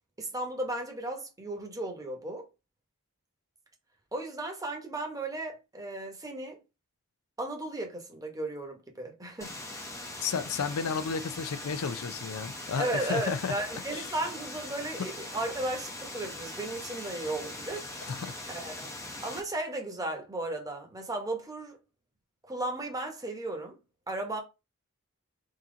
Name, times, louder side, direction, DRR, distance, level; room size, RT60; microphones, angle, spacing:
voice 1, 0.2-2.5 4.1-6.6 7.4-9.6 12.8-17.9 18.5-19.0 19.2-21.8 22.4-23.8 24.1-24.4, right 2 dB, 15° right, 1.0 m, -35 dB
sound 1, 9.4-19.4, left 1 dB, 15° left, 0.7 m, -41 dB
voice 2, 10.2-13.5 13.9-14.1 18.1-18.3, left 6 dB, 80° left, 0.5 m, -32 dB
3.7 x 2.8 x 3.8 m
head